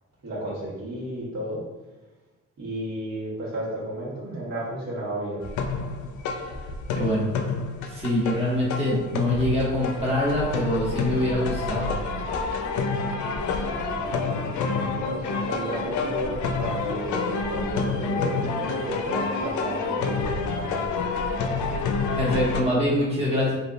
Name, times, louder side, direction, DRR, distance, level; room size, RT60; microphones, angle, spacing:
voice 1, 0.2-1.6 2.6-5.4 13.8-21.1, right 1 dB, 65° right, -7 dB, 1.5 m, -33 dB
sound 1, 5.4-22.6, left 4 dB, 75° left, 0.5 m, -28 dB
voice 2, 6.9-7.3 7.9-12.0 22.1-23.5, left 1 dB, 20° right, -7 dB, 1.1 m, -24 dB
3.4 x 2.8 x 2.4 m, 1.1 s
cardioid pair, 90°, 30 cm